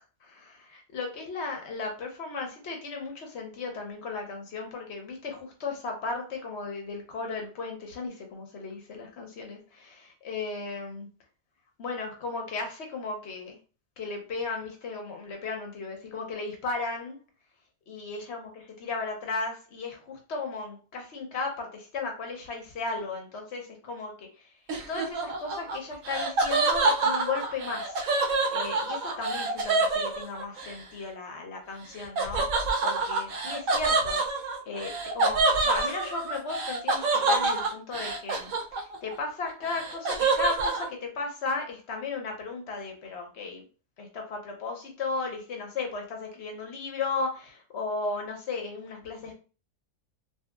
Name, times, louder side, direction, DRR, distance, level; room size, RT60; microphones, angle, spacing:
voice 1, 0.0-11.1 11.8-13.6 14.0-17.2 17.9-18.5 18.8-24.5 24.9-34.2 34.7-43.6 44.0-49.3, left 4 dB, 55° left, 2 dB, 0.8 m, -35 dB
Laughter, 24.7-30.7 32.2-39.1 39.4-40.9, right 3 dB, 65° right, 0.9 m, -27 dB
2.9 x 2.7 x 2.3 m, 0.35 s
omnidirectional pair, 1.7 m